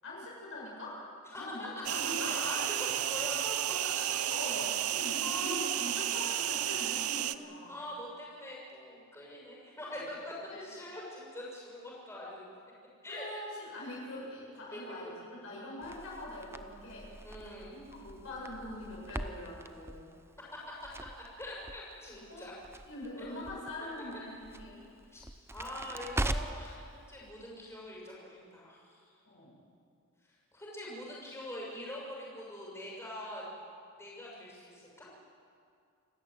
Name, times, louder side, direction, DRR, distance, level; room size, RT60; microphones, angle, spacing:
voice 1, 0.0-1.0 1.3-2.3 4.3-7.7 10.0-10.1 10.5-10.6 13.1-17.1 17.4-20.1 22.3-22.5 22.9-24.8 29.2-29.6, left 1 dB, 60° left, -4 dB, 7.1 m, -43 dB
voice 2, 1.2-1.9 2.2-3.8 4.4-4.6 5.2-5.8 7.7-12.5 13.0-13.2 14.7-15.1 17.2-17.7 20.5-20.9 21.4-22.5 23.2-23.3 24.7-24.8 25.1-25.2 25.5-29.1 30.2-33.5 34.0-35.1, left 1 dB, 10° left, -4 dB, 6.5 m, -43 dB
sound 1, 1.8-7.3, right 12 dB, 75° right, 0.7 m, -32 dB
Crackle, 15.8-26.7, right 1 dB, 10° right, 0.7 m, -42 dB
28.5 x 13.5 x 9.1 m, 2.4 s
head